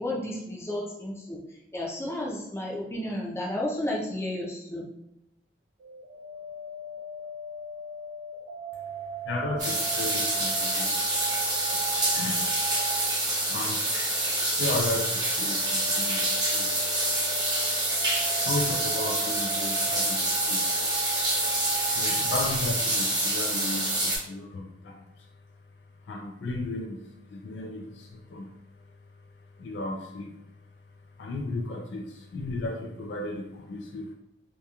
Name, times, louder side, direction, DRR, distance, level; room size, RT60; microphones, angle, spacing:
voice 1, 0.0-1.4 1.7-4.9, left 1 dB, 15° left, -3 dB, 0.5 m, -32 dB
sound 1, 5.8-13.2 15.2-22.5, right 3 dB, 75° right, 0.3 m, -38 dB
voice 2, 9.2-11.2 11.5-11.8 12.1-16.8 17.2-20.7 21.9-25.3 26.0-28.9 29.5-30.4 31.2-34.1, left 2 dB, 80° left, 3 dB, 0.3 m, -35 dB
sound 2, 9.6-24.2, right 1 dB, 25° right, 0.7 m, -27 dB
2.8 x 2.3 x 2.3 m, 0.86 s
head